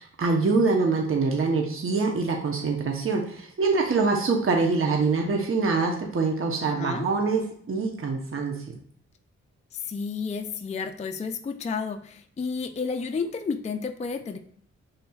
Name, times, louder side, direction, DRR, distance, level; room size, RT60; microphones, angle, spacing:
voice 1, 0.0-7.4 7.7-8.5, right 4 dB, 45° right, 1 dB, 0.9 m, -24 dB
voice 2, 6.6-7.1 9.7-14.4, left 5 dB, 25° left, 7 dB, 0.4 m, -31 dB
5.4 x 3.9 x 2.3 m, 0.63 s
cardioid pair, 65°, 30 cm